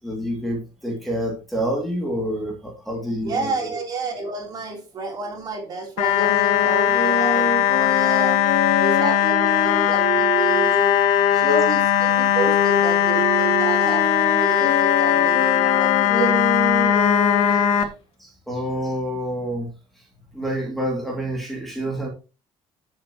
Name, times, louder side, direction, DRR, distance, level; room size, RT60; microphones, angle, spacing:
voice 1, 0.0-3.7 18.2-19.7 20.3-22.1, equal, ahead, -1 dB, 2.5 m, -28 dB
voice 2, 3.1-8.4 8.8-10.9 11.3-16.4, right 3 dB, 35° right, 1 dB, 3.5 m, -30 dB
sound 1, 6.0-17.8, left 9 dB, 85° left, 1.9 m, -19 dB
sound 2, 6.1-11.7 12.3-17.8, left 3 dB, 55° left, 4.8 m, -26 dB
13.0 x 7.5 x 3.0 m, 0.31 s
cardioid pair, 175°, 12 cm